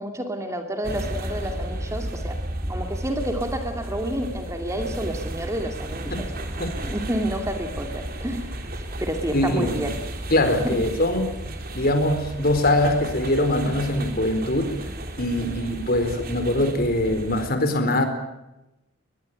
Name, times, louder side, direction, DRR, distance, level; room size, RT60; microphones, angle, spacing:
voice 1, 0.0-2.4 2.7-6.3 6.8-8.5 9.0-9.9 10.6-10.8 15.4-15.6, right 1 dB, 15° right, 5 dB, 2.6 m, -29 dB
sound 1, 0.8-17.5, right 1 dB, 45° right, 3.4 m, -33 dB
voice 2, 9.3-9.8 10.3-11.3 11.7-14.7 15.2-18.0, left 1 dB, 45° left, 8 dB, 4.3 m, -22 dB
21.5 x 21.5 x 9.0 m, 0.95 s
head